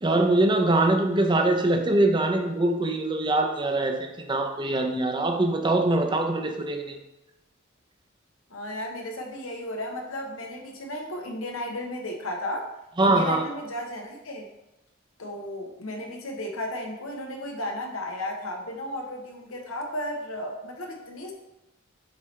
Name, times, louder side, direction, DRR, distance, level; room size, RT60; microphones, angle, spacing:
voice 1, 0.0-7.0 13.0-13.4, right 2 dB, 25° right, 4 dB, 0.6 m, -23 dB
voice 2, 8.5-12.7 13.0-14.5 15.2-21.3, left 1 dB, 85° left, 2 dB, 1.0 m, -34 dB
7.2 x 4.3 x 3.2 m, 0.96 s
head